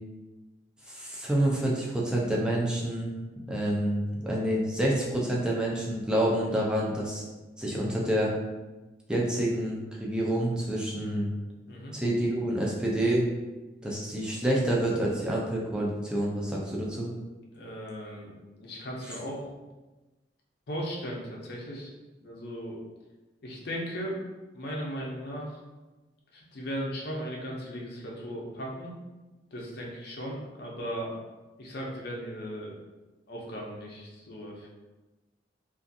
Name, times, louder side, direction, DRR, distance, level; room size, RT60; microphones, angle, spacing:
voice 1, 0.9-3.1 3.5-7.2 7.6-8.3 9.1-11.3 11.9-13.3 13.8-17.1, right 1 dB, 5° right, -4 dB, 0.4 m, -28 dB
voice 2, 17.5-19.5 20.7-21.9 22.2-22.8 23.4-24.2 24.5-25.6 26.3-29.0 29.5-31.1 31.6-32.7 33.3-34.7, equal, 60° left, -2 dB, 0.6 m, -37 dB
2.5 x 2.4 x 2.6 m, 1.1 s
head